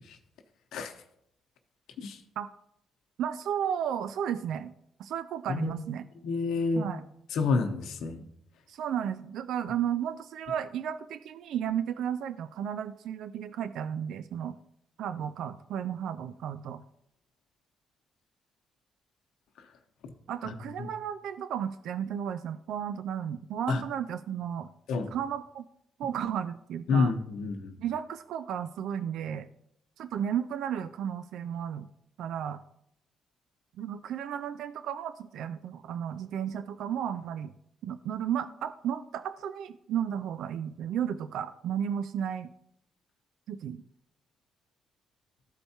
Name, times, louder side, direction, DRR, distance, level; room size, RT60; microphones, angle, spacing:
voice 1, 3.2-4.7 5.0-6.0 6.8-7.1 8.7-14.6 15.0-16.8 20.3-24.7 25.1-25.6 26.0-27.1 27.8-29.5 30.0-31.9 32.2-32.6 33.8-37.5 37.8-42.5 43.5-43.8, right 9 dB, 80° right, 12 dB, 0.3 m, -33 dB
voice 2, 6.2-6.9 7.3-8.2 20.4-20.5 23.7-23.8 24.9-25.1 26.9-27.7, left 4 dB, 80° left, 5 dB, 0.8 m, -28 dB
13.0 x 4.5 x 2.8 m, 0.75 s
cardioid pair, 90°, 0 cm